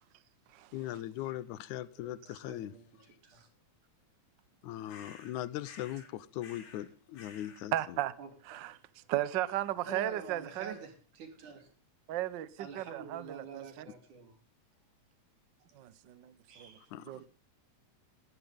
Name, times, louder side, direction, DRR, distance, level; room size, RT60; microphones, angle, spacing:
voice 1, 0.7-2.7 4.6-8.0 16.9-17.2, left 13 dB, 80° left, 2.2 m, -40 dB
voice 2, 2.4-2.8 3.2-3.5 8.2-8.3 9.9-11.7 12.6-14.3 16.5-16.9, right 4 dB, 85° right, 4.6 m, -47 dB
sound 1, 4.9-5.4 5.6-6.1 6.4-6.9 7.1-7.6, left 4 dB, 65° left, 3.7 m, -53 dB
voice 3, 7.7-8.1 8.4-8.8 9.1-10.8 12.1-13.9 15.7-16.8 17.1-17.3, right 13 dB, 70° right, 1.1 m, -35 dB
19.5 x 13.5 x 3.6 m
omnidirectional pair, 3.4 m